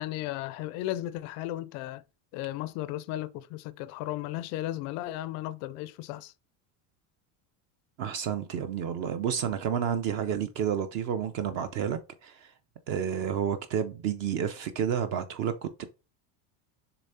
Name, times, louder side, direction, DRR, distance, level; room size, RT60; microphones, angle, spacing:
voice 1, 0.0-2.0 2.3-6.3, left 15 dB, 40° left, 0.4 m, -35 dB
voice 2, 8.0-12.5 12.9-15.8, right 8 dB, 40° right, 0.5 m, -30 dB
7.0 x 3.4 x 4.2 m
cardioid pair, 170°, 43 cm